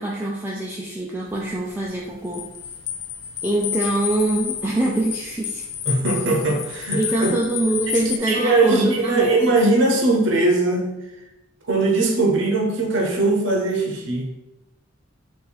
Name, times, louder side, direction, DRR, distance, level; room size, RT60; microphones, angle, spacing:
voice 1, 0.0-2.5 3.4-5.6 7.0-9.3, right 1 dB, 10° right, -4 dB, 0.3 m, -24 dB
sound 1, 1.3-8.2, left 9 dB, 85° left, 0.5 m, -31 dB
voice 2, 5.8-7.3 8.3-11.0 11.7-14.3, right 2 dB, 60° right, 0 dB, 0.8 m, -20 dB
4.0 x 2.6 x 4.0 m, 0.95 s
head